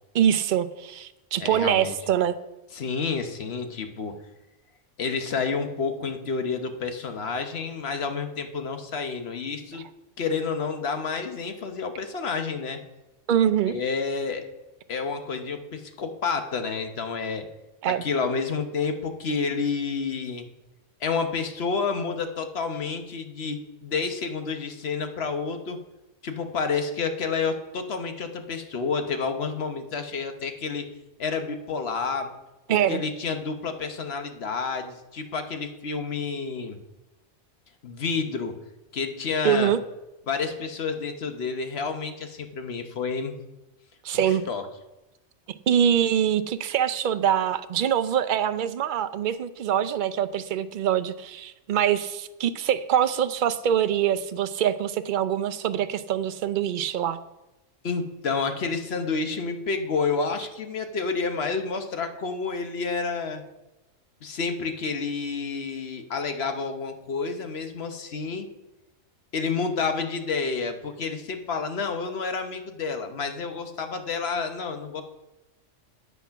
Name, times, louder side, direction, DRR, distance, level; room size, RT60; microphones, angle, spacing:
voice 1, 0.1-2.4 13.3-13.7 17.8-18.0 32.7-33.0 39.4-39.8 44.0-44.4 45.7-57.2, right 9 dB, 55° right, 12 dB, 0.6 m, -24 dB
voice 2, 1.4-1.9 2.7-4.2 5.0-9.9 10.2-12.8 13.7-14.4 14.9-17.5 17.9-20.5 21.0-25.8 26.2-30.9 31.2-32.3 32.7-36.8 37.8-38.5 38.9-39.7 40.3-43.4 44.3-44.6 57.8-63.4 64.2-68.5 69.3-75.0, left 5 dB, 55° left, 7 dB, 1.2 m, -29 dB
8.2 x 8.2 x 5.7 m, 1.0 s
omnidirectional pair, 1.3 m